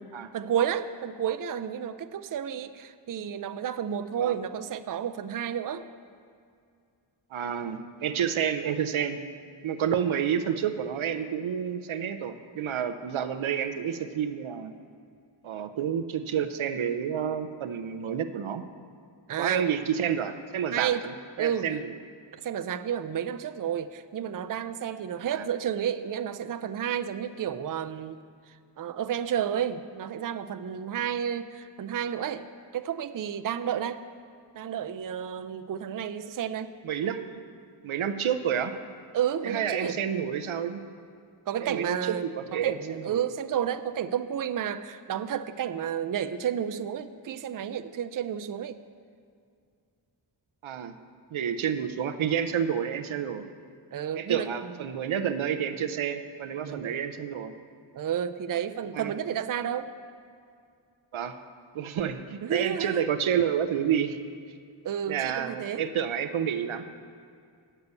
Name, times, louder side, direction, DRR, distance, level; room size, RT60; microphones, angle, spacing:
voice 1, 0.3-5.8 19.3-19.8 20.7-21.0 21.4-21.7 22.3-28.2 28.5-32.5 32.7-34.0 34.5-36.7 39.1-40.0 41.5-48.8 53.9-54.8 56.6-57.0 57.9-59.9 62.4-63.0 64.8-65.8, right 9 dB, 45° right, 10 dB, 0.5 m, -31 dB
voice 2, 7.3-9.2 9.6-14.7 15.4-18.6 19.4-21.1 21.4-21.9 25.3-25.5 36.8-37.4 37.8-38.7 39.4-40.8 41.6-43.2 50.6-51.0 51.3-53.4 54.1-57.5 58.9-59.1 61.1-61.4 61.7-64.2 65.1-67.0, right 8 dB, 90° right, 9 dB, 0.6 m, -29 dB
8.4 x 6.8 x 8.0 m, 2.3 s
wide cardioid pair, 55°, 47 cm